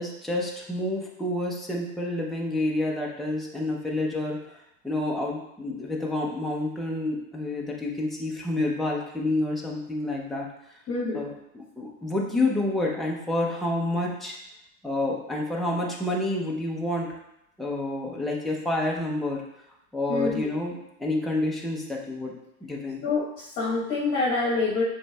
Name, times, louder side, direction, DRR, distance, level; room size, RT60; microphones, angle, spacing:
voice 1, 0.0-4.6 4.8-10.5 11.1-14.3 14.8-17.1 17.6-19.4 19.9-22.3 22.6-23.0, left 2 dB, ahead, -3 dB, 0.6 m, -29 dB
voice 2, 10.9-11.2 20.1-20.5 23.0-24.8, left 3 dB, 35° left, -6 dB, 1.1 m, -26 dB
7.0 x 3.2 x 2.3 m, 0.82 s
hypercardioid pair, 125°, 42 cm